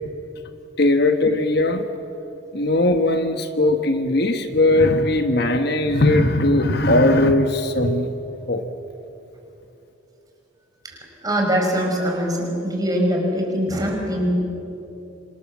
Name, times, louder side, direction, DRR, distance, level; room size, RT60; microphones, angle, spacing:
voice 1, 0.8-1.8 2.5-8.1 8.5-8.6, left 2 dB, 55° left, 7 dB, 1.3 m, -19 dB
voice 2, 10.8-14.3, equal, 20° right, 1 dB, 5.2 m, -23 dB
27.5 x 26.0 x 7.5 m, 2.9 s
head